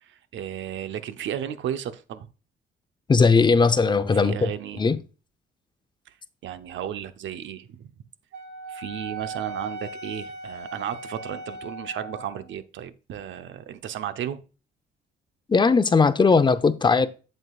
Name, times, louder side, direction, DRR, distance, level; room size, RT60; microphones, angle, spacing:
voice 1, 0.0-2.3 4.1-4.8 6.1-6.2 6.4-7.9 8.7-14.4, right 10 dB, 70° right, 0.8 m, -34 dB
voice 2, 3.1-4.5 4.8-5.0 15.5-17.1, left 4 dB, 20° left, 0.6 m, -18 dB
Wind instrument woodwind instrument, 8.3-12.5, right 2 dB, 55° right, 1.3 m, -38 dB
7.9 x 7.7 x 2.4 m
cardioid pair, 90°, 20 cm